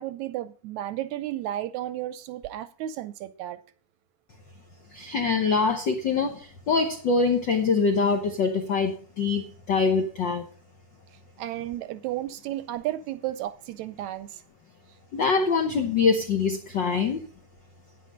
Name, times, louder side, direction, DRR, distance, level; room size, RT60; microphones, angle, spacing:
voice 1, 0.0-3.6 11.4-14.4, right 13 dB, 75° right, 1.8 m, -33 dB
voice 2, 4.9-10.4 15.1-17.2, left 4 dB, 75° left, 1.0 m, -24 dB
9.8 x 9.0 x 5.2 m
omnidirectional pair, 3.6 m